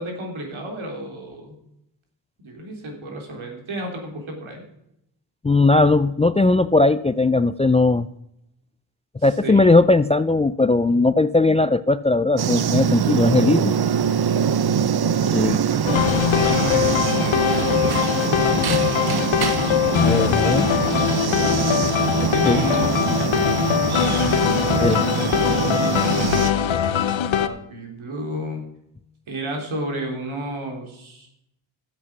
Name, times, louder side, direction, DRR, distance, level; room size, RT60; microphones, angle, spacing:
voice 1, 0.0-1.5 2.4-4.6 9.2-9.7 15.5-16.2 16.4-20.2 22.2-24.0 25.2-28.7 29.3-31.3, right 1 dB, 75° right, 2 dB, 3.5 m, -33 dB
voice 2, 5.4-8.1 9.2-13.7 15.3-15.6 20.0-20.7 22.5-22.6 24.8-25.0, left 3 dB, 15° left, 15 dB, 0.4 m, -18 dB
sound 1, 12.4-26.5, right 7 dB, 50° right, 0.9 m, -23 dB
sound 2, 15.9-27.5, left 10 dB, 70° left, 0.9 m, -21 dB
12.0 x 8.2 x 6.1 m, 0.80 s
cardioid pair, 55°, 49 cm